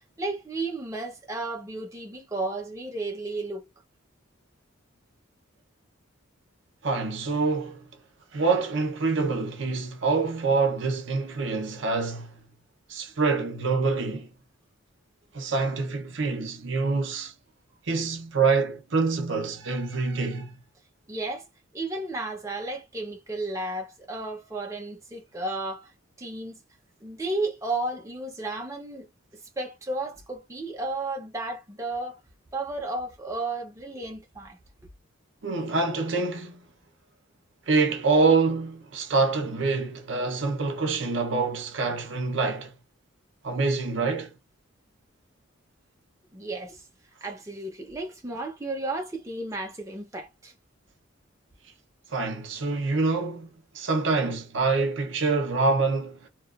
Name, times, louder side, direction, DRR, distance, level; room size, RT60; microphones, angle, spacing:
voice 1, 0.2-3.7 21.1-21.5 21.7-25.9 26.2-26.6 27.0-32.2 32.5-34.6 46.3-46.8 47.2-50.5, right 2 dB, 15° right, 0.7 m, -33 dB
voice 2, 6.8-7.9 8.3-12.4 12.9-14.3 15.3-17.3 17.9-20.5 35.4-36.7 37.7-42.7 43.4-44.3 52.1-56.3, right 4 dB, 60° right, 0.7 m, -26 dB
2.8 x 2.3 x 2.4 m
head